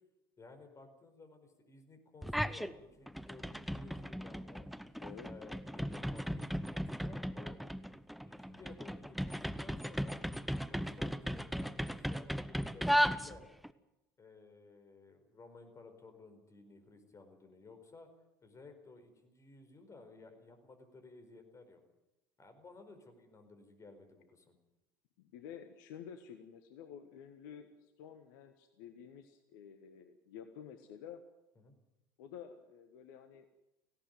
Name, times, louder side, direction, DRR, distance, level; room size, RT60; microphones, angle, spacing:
voice 1, 0.4-4.7 5.2-7.6 8.3-10.2 10.6-13.4 14.2-18.1 18.4-21.8 22.4-24.5 31.5-31.7, left 3 dB, 25° left, 6 dB, 4.8 m, -56 dB
sound 1, 2.2-2.7 3.1-13.7, equal, ahead, 0.9 m, -36 dB
voice 2, 25.2-31.2 32.2-33.5, left 8 dB, 65° left, 8 dB, 1.4 m, -51 dB
18.5 x 16.5 x 9.3 m, 0.93 s
figure-of-eight pair, 70°, 12 cm